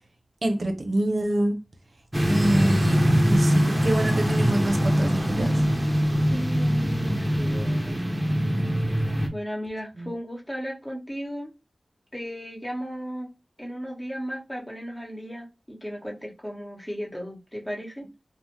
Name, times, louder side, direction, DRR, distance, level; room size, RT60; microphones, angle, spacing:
voice 1, 0.4-1.6 2.2-5.5 10.0-10.1, right 1 dB, 60° right, 0.6 m, -26 dB
sound 1, 2.1-9.3, equal, 20° right, 0.7 m, -23 dB
voice 2, 6.3-8.0 9.3-11.5 12.1-13.3 13.6-18.1, equal, 15° left, 1.2 m, -35 dB
2.7 x 2.0 x 3.2 m
cardioid pair, 45°, 0 cm